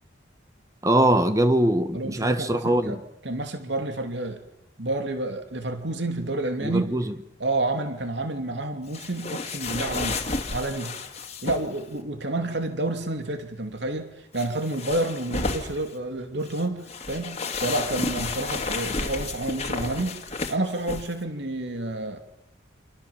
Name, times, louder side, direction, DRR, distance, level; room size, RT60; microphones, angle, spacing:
voice 1, 0.8-3.0 6.6-7.1, right 1 dB, 15° right, 1.3 m, -22 dB
voice 2, 1.9-3.0 3.2-4.4 4.8-6.9 7.4-10.2 10.5-11.0 11.4-20.2 20.5-22.2, right 2 dB, 65° right, 2.8 m, -29 dB
sound 1, 8.9-11.8 14.3-15.9 16.4-21.1, left 3 dB, 35° left, 2.3 m, -32 dB
29.0 x 26.5 x 7.3 m
head